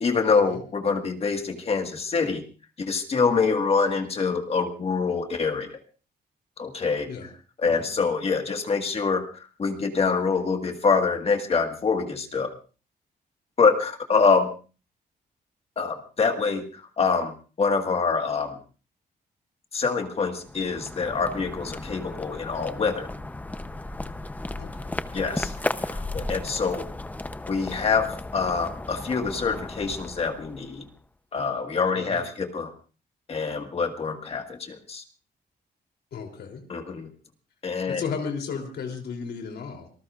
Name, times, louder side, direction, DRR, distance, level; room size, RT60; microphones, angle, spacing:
voice 1, 0.0-2.4 2.8-5.7 6.6-7.1 7.6-9.2 9.6-12.5 13.6-14.5 15.8-17.3 17.6-18.6 19.7-23.1 25.1-25.5 25.9-26.9 27.5-28.1 28.3-30.8 31.3-32.7 33.3-35.0 36.7-37.1 37.6-38.0, left 5 dB, 35° left, 5 dB, 1.7 m, -25 dB
sound 1, 20.3-31.0, left 2 dB, 10° left, 0.7 m, -35 dB
voice 2, 24.6-25.0 31.9-32.2 36.1-36.6 37.9-39.9, left 5 dB, 90° left, 3 dB, 3.2 m, -34 dB
26.5 x 19.5 x 2.5 m, 0.36 s
wide cardioid pair, 170°, 17 cm